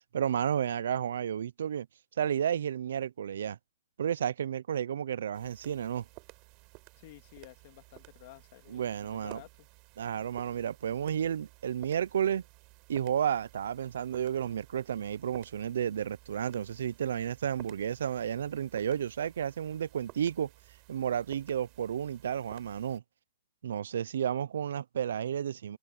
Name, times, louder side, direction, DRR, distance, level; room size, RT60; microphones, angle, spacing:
voice 1, 0.1-1.9 2.2-3.6 4.0-6.0 8.7-9.4 10.0-12.4 12.9-20.5 20.9-23.0 23.6-25.8, right 9 dB, 70° right, 0.5 m, -32 dB
sound 1, 5.3-23.0, right 28 dB, 30° right, 5.0 m, -55 dB
voice 2, 7.0-9.7, left 20 dB, 40° left, 2.7 m, -53 dB
hypercardioid pair, 160°, 0 cm